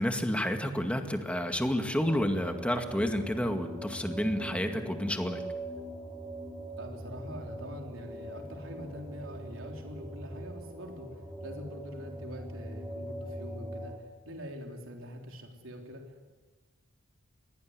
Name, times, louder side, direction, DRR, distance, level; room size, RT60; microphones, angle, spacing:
voice 1, 0.0-5.4, equal, 5° left, 5 dB, 2.1 m, -30 dB
sound 1, 2.0-14.0, right 1 dB, 15° right, 3.1 m, -42 dB
voice 2, 6.8-11.1 11.4-13.9 14.3-16.0, equal, 80° right, 2 dB, 3.7 m, -44 dB
23.0 x 18.0 x 9.7 m, 1.3 s
head